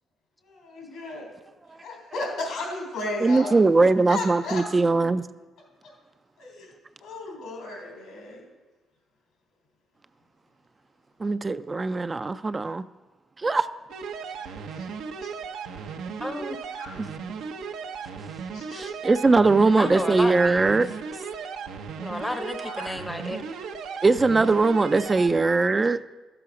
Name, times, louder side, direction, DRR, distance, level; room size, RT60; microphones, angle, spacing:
voice 1, 0.4-1.3 1.7-4.6 5.8-5.9 6.4-6.7 7.0-8.5 14.8-14.9 15.2-15.3 16.8-17.0 18.5-18.9 22.6-23.0, left 2 dB, 85° left, 0 dB, 3.2 m, -35 dB
voice 2, 3.2-5.2 11.2-12.9 13.4-13.7 17.0-17.1 18.7-20.9 24.0-26.0, right 3 dB, 25° right, 12 dB, 0.3 m, -21 dB
sound 1, 13.9-25.4, right 5 dB, 85° right, 0.7 m, -36 dB
voice 3, 16.2-16.6 19.8-20.6 22.0-23.6, left 1 dB, 10° left, 7 dB, 0.7 m, -32 dB
12.5 x 7.0 x 4.9 m, 1.2 s
cardioid pair, 90°, 0 cm